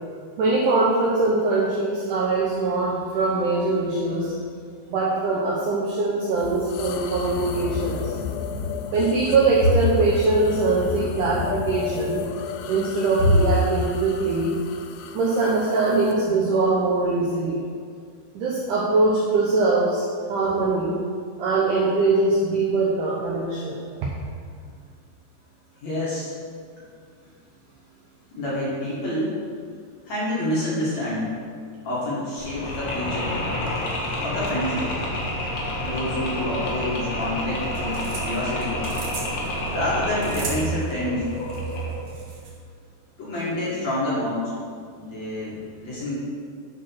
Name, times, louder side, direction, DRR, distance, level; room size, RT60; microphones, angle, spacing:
voice 1, 0.4-4.3 4.9-8.2 8.9-12.2 12.7-14.5 15.1-17.6 18.4-21.0 21.4-24.1, right 3 dB, 80° right, -3 dB, 1.8 m, -22 dB
sound 1, 6.4-16.2, left 7 dB, 80° left, 2.4 m, -33 dB
voice 2, 25.8-26.3 28.3-29.4 30.1-31.4 31.8-33.4 34.2-34.9 35.8-38.8 39.7-41.6 43.2-44.5 45.0-46.1, left 1 dB, 45° left, -7 dB, 2.9 m, -28 dB
Mechanisms, 32.4-42.1, equal, 60° left, 3.0 m, -29 dB
sound 2, 37.5-42.5, right 4 dB, 60° right, 2.4 m, -38 dB
11.0 x 4.8 x 6.1 m, 2.1 s
omnidirectional pair, 5.1 m